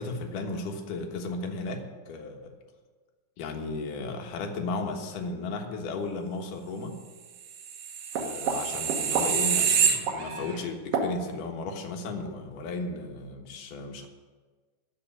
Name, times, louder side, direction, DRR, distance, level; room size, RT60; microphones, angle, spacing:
voice 1, 0.0-2.4 3.4-7.0 8.2-14.1, left 3 dB, 75° left, 3 dB, 2.9 m, -35 dB
sound 1, 7.6-10.6 10.9-11.1, right 6 dB, 85° right, 3.0 m, -26 dB
15.5 x 5.4 x 9.9 m, 1.4 s
omnidirectional pair, 3.8 m